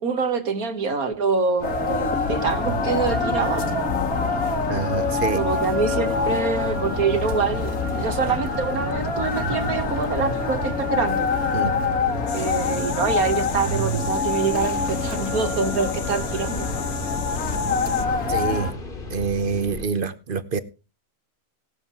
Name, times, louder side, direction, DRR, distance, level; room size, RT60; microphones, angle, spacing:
voice 1, 0.0-3.6 5.3-7.7 8.0-11.3 12.3-16.7, right 5 dB, 65° right, 2.0 m, -25 dB
sound 1, 1.6-18.7, left 3 dB, 65° left, 2.2 m, -25 dB
sound 2, 1.6-19.9, left 3 dB, 35° left, 1.8 m, -37 dB
voice 2, 4.7-5.4 11.5-11.7 18.3-18.7 19.1-20.6, right 5 dB, 40° right, 0.9 m, -26 dB
sound 3, 12.3-18.1, left 9 dB, 90° left, 1.5 m, -38 dB
18.5 x 7.4 x 4.4 m
omnidirectional pair, 1.6 m